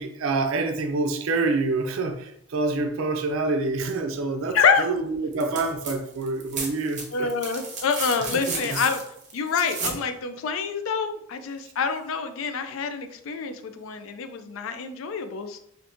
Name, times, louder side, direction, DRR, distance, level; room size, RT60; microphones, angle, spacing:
voice 1, 0.0-7.3, right 3 dB, 85° right, 5 dB, 0.4 m, -27 dB
sound 1, 5.3-6.0 6.2-10.0 11.7-11.8, right 3 dB, 35° right, 0.7 m, -33 dB
voice 2, 7.1-9.0 9.3-15.6, left 5 dB, 85° left, 9 dB, 0.4 m, -26 dB
3.4 x 2.6 x 2.5 m, 0.74 s
head